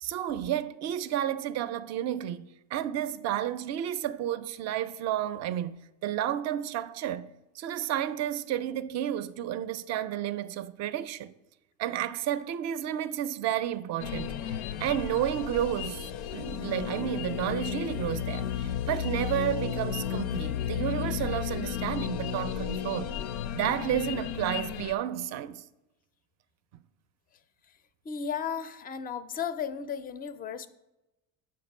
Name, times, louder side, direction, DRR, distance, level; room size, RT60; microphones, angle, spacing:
voice 1, 0.0-11.3 11.8-23.2 23.5-25.6, right 11 dB, 45° right, 0.4 m, -31 dB
sound 1, 14.0-24.9, left 10 dB, 85° left, 0.5 m, -33 dB
voice 2, 28.0-30.7, left 7 dB, 25° left, 0.4 m, -34 dB
6.7 x 5.1 x 5.4 m
supercardioid pair, 115°, 39 cm